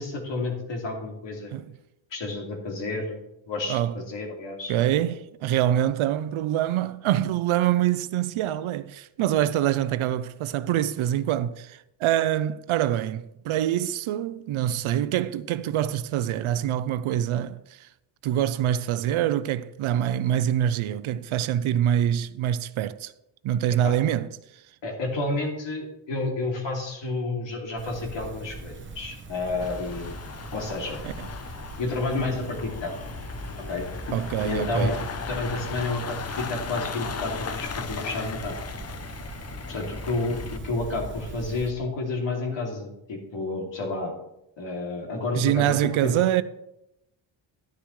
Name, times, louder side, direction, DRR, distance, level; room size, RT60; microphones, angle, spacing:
voice 1, 0.0-1.5 2.1-4.7 23.8-23.9 24.8-30.1 30.5-31.0 31.8-32.9 33.7-33.9 34.4-35.0 35.3-38.6 39.7-44.1 44.6-45.8 46.0-46.1, left 2 dB, 60° left, 2.8 m, -30 dB
voice 2, 4.7-17.9 18.2-23.1 23.4-24.3 31.0-31.3 34.1-35.0 45.3-46.4, right 11 dB, 75° right, 0.6 m, -25 dB
sound 1, 27.8-41.7, right 3 dB, 25° right, 1.0 m, -40 dB
sound 2, 29.6-40.6, left 5 dB, 30° left, 0.6 m, -36 dB
11.5 x 10.0 x 3.2 m
cardioid pair, 120°, 50 cm